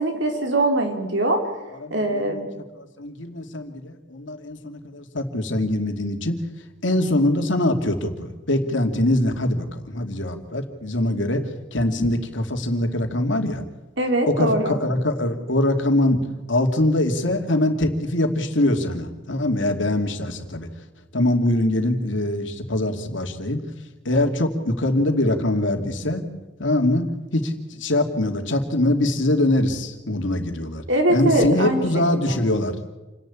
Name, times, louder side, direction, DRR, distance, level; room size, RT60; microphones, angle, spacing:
voice 1, 0.0-1.4 1.9-2.5 14.0-14.8 30.9-31.8 32.1-32.4, right 1 dB, 75° right, 3 dB, 4.2 m, -22 dB
voice 2, 1.8-2.6 3.0-6.4 6.8-11.4 11.7-13.6 14.3-16.2 16.5-20.7 21.1-23.6 24.0-26.2 26.6-27.5 27.8-30.8 31.1-32.8, left 1 dB, 80° left, 5 dB, 2.6 m, -23 dB
28.5 x 11.0 x 8.7 m, 1.1 s
head